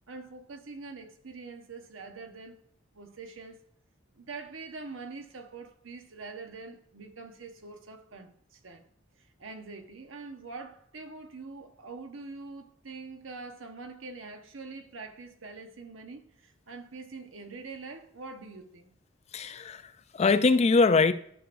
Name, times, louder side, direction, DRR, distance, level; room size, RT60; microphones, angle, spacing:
voice 1, 0.1-2.6 2.9-3.6 4.1-8.8 9.2-18.9, right 3 dB, 70° right, 1.0 m, -44 dB
voice 2, 19.3-21.1, left 4 dB, 30° left, 0.4 m, -23 dB
12.0 x 6.0 x 2.6 m
head